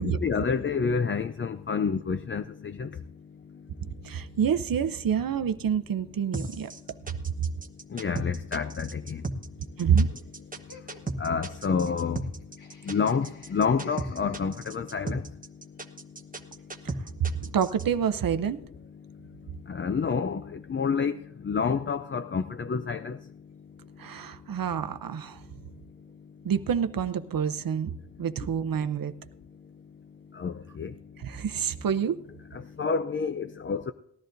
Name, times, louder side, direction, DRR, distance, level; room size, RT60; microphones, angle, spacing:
voice 1, 0.0-3.2 3.4-4.2 7.9-10.0 10.5-17.3 19.0-23.4 30.3-31.2 32.5-33.9, left 5 dB, 30° left, 0.4 m, -30 dB
voice 2, 4.0-6.7 9.8-10.1 16.8-16.9 17.2-18.6 24.0-25.4 26.4-27.9 28.2-29.1 31.2-32.2, right 7 dB, 55° right, 0.7 m, -27 dB
sound 1, 6.3-17.8, right 3 dB, 20° right, 1.1 m, -35 dB
Laughter, 10.7-14.9, left 3 dB, 50° left, 1.6 m, -50 dB
19.5 x 13.5 x 2.6 m
wide cardioid pair, 160°, 41 cm